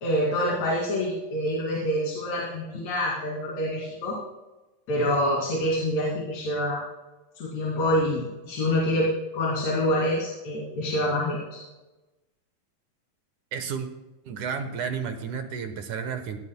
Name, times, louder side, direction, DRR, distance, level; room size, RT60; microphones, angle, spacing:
voice 1, 0.0-4.2 4.9-6.8 7.4-11.6, left 1 dB, 55° left, -4 dB, 3.6 m, -26 dB
voice 2, 13.5-13.9 14.3-16.4, right 6 dB, 70° right, 7 dB, 2.3 m, -32 dB
18.5 x 17.0 x 2.2 m, 1.1 s
omnidirectional pair, 4.1 m